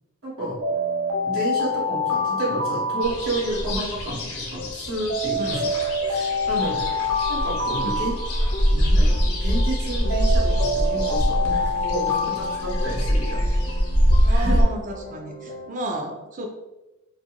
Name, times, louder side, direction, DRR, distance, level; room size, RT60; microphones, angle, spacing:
voice 1, 0.2-0.6 1.2-5.7 6.0-6.8 7.3-8.1 8.7-13.4 14.3-14.6, right 1 dB, 65° right, -7 dB, 1.0 m, -30 dB
Alarm, 0.6-3.9 5.1-8.9 10.1-13.4, left 2 dB, 85° right, 0.6 m, -26 dB
sound 1, 0.7-15.8, left 1 dB, 40° left, 0.3 m, -39 dB
sound 2, 3.0-14.6, equal, 80° left, 0.6 m, -24 dB
voice 2, 14.2-16.5, right 1 dB, 35° right, 3 dB, 0.4 m, -32 dB
2.4 x 2.4 x 2.9 m, 1.0 s
head